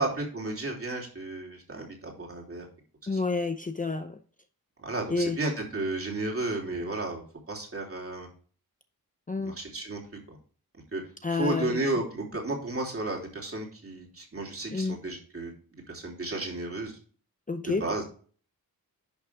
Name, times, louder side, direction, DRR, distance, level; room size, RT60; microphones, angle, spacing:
voice 1, 0.0-2.6 3.1-3.2 4.8-8.3 9.4-10.4 10.9-11.0 11.3-16.9 17.6-18.0, right 2 dB, 35° right, 0 dB, 3.3 m, -33 dB
voice 2, 3.1-4.2 5.1-5.4 9.3-9.6 11.2-11.8 14.7-15.0 17.5-18.0, left 3 dB, 20° left, 8 dB, 0.6 m, -29 dB
10.5 x 6.2 x 3.5 m, 0.41 s
wide cardioid pair, 130°, 37 cm